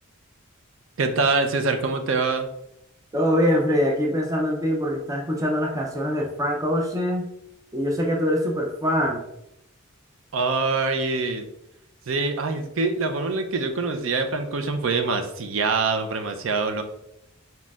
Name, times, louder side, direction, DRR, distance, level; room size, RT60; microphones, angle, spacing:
voice 1, 1.0-2.5 10.3-11.5 12.1-16.8, right 3 dB, 65° right, 6 dB, 0.5 m, -24 dB
voice 2, 3.1-7.3 7.7-9.2, equal, 15° right, 0 dB, 0.5 m, -23 dB
4.2 x 4.1 x 2.4 m, 0.81 s
head